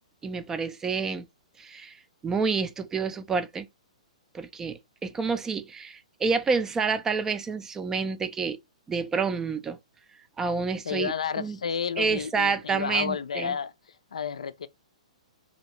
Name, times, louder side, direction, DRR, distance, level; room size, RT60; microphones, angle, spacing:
voice 1, 0.2-1.3 1.6-2.0 2.2-3.7 4.3-8.6 8.9-9.8 10.4-11.6 12.0-13.5, right 5 dB, 10° right, 0.4 m, -28 dB
voice 2, 10.8-13.7 14.1-14.7, left 7 dB, 65° left, 0.4 m, -31 dB
2.8 x 2.7 x 4.2 m
figure-of-eight pair, 115°, 4 cm